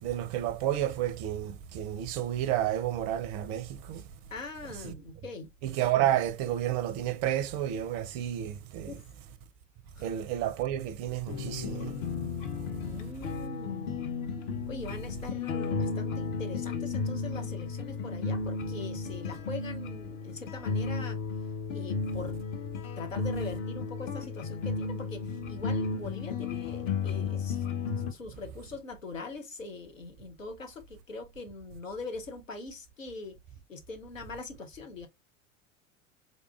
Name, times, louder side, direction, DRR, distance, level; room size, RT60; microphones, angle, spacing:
voice 1, 0.0-4.0 4.8-4.9 5.6-8.9 10.0-12.0, right 12 dB, 35° right, 0.5 m, -31 dB
voice 2, 4.3-5.5 8.9-9.1 10.0-10.1 12.8-14.0 14.7-21.2 21.7-22.4 23.0-27.7 28.1-33.4 33.7-35.1, left 3 dB, 85° left, 0.8 m, -42 dB
sound 1, 11.3-28.1, left 4 dB, 35° left, 0.7 m, -34 dB
4.0 x 3.5 x 2.3 m
figure-of-eight pair, 80°, 38 cm